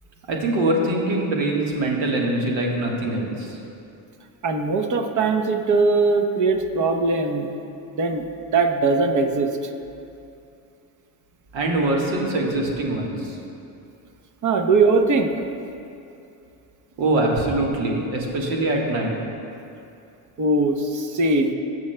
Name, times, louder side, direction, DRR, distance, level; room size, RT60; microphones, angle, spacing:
voice 1, 0.3-3.6 11.5-13.4 17.0-19.1, right 2 dB, 80° right, -1 dB, 1.5 m, -23 dB
voice 2, 4.4-7.5 7.9-8.2 8.5-9.5 14.4-15.3 20.4-21.5, right 3 dB, 45° right, 6 dB, 0.9 m, -20 dB
16.5 x 6.0 x 2.2 m, 2.6 s
supercardioid pair, 85°, 44 cm